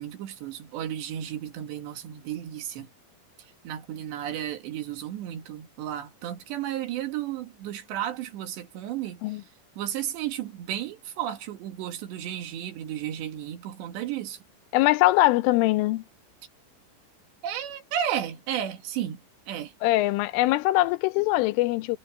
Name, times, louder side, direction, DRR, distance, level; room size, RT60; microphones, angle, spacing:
voice 1, 0.0-2.9 3.6-9.4 9.8-14.4 17.4-19.7, right 11 dB, 65° right, 4.0 m, -33 dB
voice 2, 14.7-16.0 19.8-22.0, left 18 dB, 85° left, 3.3 m, -22 dB
omnidirectional pair, 5.6 m